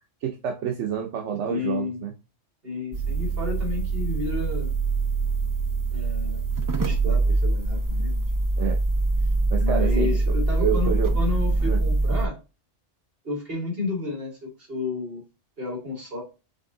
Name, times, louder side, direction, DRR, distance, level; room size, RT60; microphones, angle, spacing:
voice 1, 0.2-2.1 8.6-8.8 9.5-10.2 10.6-11.1 11.6-11.8, right 9 dB, 85° right, 2 dB, 1.0 m, -28 dB
voice 2, 1.5-2.0 2.6-4.7 5.9-6.5 6.8-8.2 9.6-12.3 13.2-15.2 15.6-16.2, left 3 dB, 55° right, -1 dB, 2.4 m, -31 dB
sound 1, 2.9-12.3, right 3 dB, 30° right, 0.4 m, -24 dB
5.3 x 2.7 x 3.7 m, 0.31 s
omnidirectional pair, 1.2 m